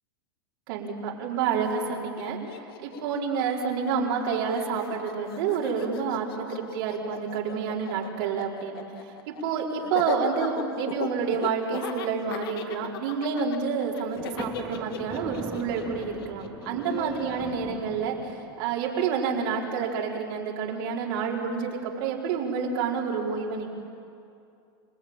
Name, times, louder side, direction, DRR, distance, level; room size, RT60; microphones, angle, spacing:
voice 1, 0.7-23.7, right 6 dB, 60° right, -2 dB, 4.7 m, -29 dB
Laughter, 1.6-1.7 1.9-4.2 4.5-17.6, left 9 dB, 70° left, 2.0 m, -38 dB
Thunder, 14.2-18.7, right 3 dB, 10° right, 2.6 m, -40 dB
28.5 x 18.5 x 9.0 m, 2.5 s
supercardioid pair, 145°, 13 cm